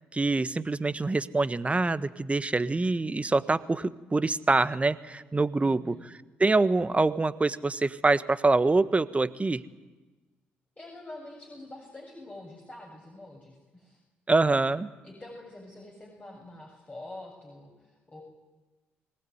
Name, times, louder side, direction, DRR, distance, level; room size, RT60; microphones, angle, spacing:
voice 1, 0.1-6.1 6.4-9.6 14.3-14.9, right 3 dB, 25° right, 13 dB, 1.3 m, -25 dB
voice 2, 5.6-6.0 10.8-14.0 15.0-18.2, left 2 dB, 25° left, -1 dB, 7.5 m, -46 dB
24.0 x 19.0 x 9.5 m, 1.2 s
hypercardioid pair, 45°, 5 cm